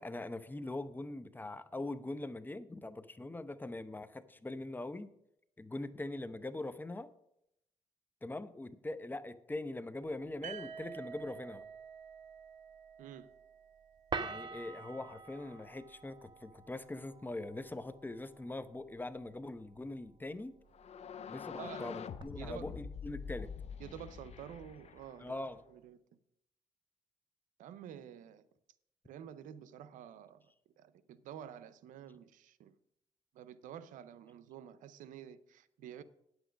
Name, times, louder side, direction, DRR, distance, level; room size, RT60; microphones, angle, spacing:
voice 1, 0.0-5.1 5.6-7.1 8.2-11.7 14.2-20.5 21.3-23.5 25.2-25.6, left 2 dB, 15° left, 0.7 m, -42 dB
sound 1, 10.0-22.2, right 4 dB, 35° right, 0.9 m, -49 dB
sound 2, 10.4-14.3, right 7 dB, 70° right, 1.0 m, -49 dB
voice 2, 13.0-13.3 21.6-22.0 22.4-22.7 23.8-25.4 25.7-26.0 27.6-28.5 29.0-30.5 30.8-32.7 33.3-36.0, right 9 dB, 90° right, 0.6 m, -49 dB
sound 3, 20.7-25.6, left 7 dB, 55° left, 0.6 m, -46 dB
9.4 x 8.1 x 5.1 m
cardioid pair, 75°, 13 cm